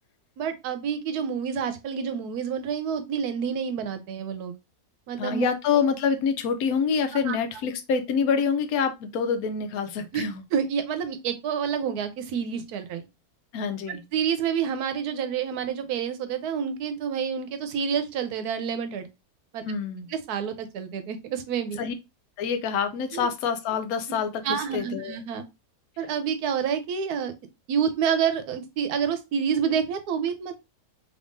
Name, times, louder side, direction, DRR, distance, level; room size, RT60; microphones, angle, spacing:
voice 1, 0.4-4.5 5.1-5.4 7.3-7.4 10.1-10.2 10.5-13.0 13.9-19.1 19.5-19.6 20.3-21.8 23.1-23.3 24.4-25.4 26.0-27.3 27.7-30.6, right 7 dB, 85° right, 1.2 m, -28 dB
voice 2, 5.2-10.4 13.5-14.0 19.6-20.1 21.8-21.9 22.4-25.2, left 6 dB, 80° left, 1.1 m, -26 dB
3.6 x 3.1 x 2.5 m
omnidirectional pair, 1.6 m